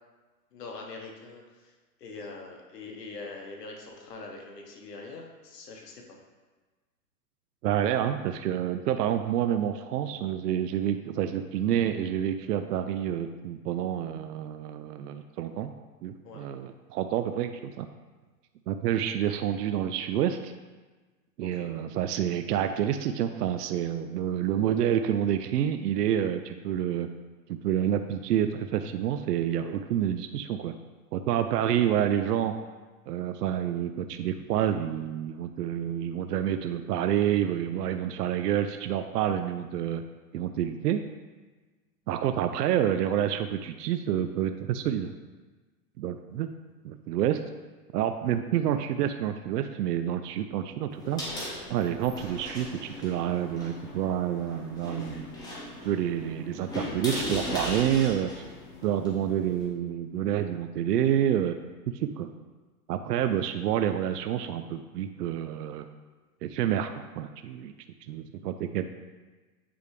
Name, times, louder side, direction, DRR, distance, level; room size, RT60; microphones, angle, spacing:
voice 1, 0.5-1.7 2.0-6.2 16.2-16.5 21.5-21.7, left 3 dB, 80° left, 0 dB, 1.4 m, -43 dB
voice 2, 7.6-15.7 16.0-17.9 18.7-20.5 21.4-27.1 27.5-30.7 31.1-32.5 33.1-40.0 40.3-41.0 42.1-45.1 46.0-46.5 46.8-47.4 47.9-51.2 51.7-55.3 55.8-58.4 58.8-61.6 62.0-62.3 62.9-65.9 66.4-67.7 68.1-68.9, right 10 dB, 80° right, 8 dB, 0.5 m, -28 dB
sound 1, 50.9-59.7, left 1 dB, 10° left, 0.8 m, -38 dB
8.9 x 3.4 x 3.2 m, 1.3 s
hypercardioid pair, 150°, 47 cm